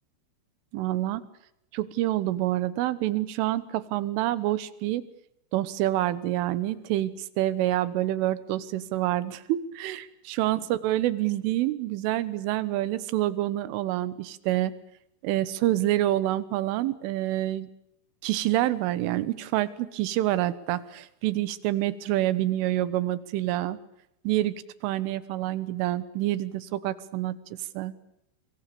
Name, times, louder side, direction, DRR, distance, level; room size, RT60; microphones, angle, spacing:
voice 1, 0.7-1.2 1.7-5.0 5.5-14.8 15.2-17.7 18.2-23.8 24.3-27.4 27.8-27.9, right 14 dB, 85° right, 17 dB, 3.7 m, -27 dB
26.5 x 23.5 x 6.9 m, 0.78 s
omnidirectional pair, 5.5 m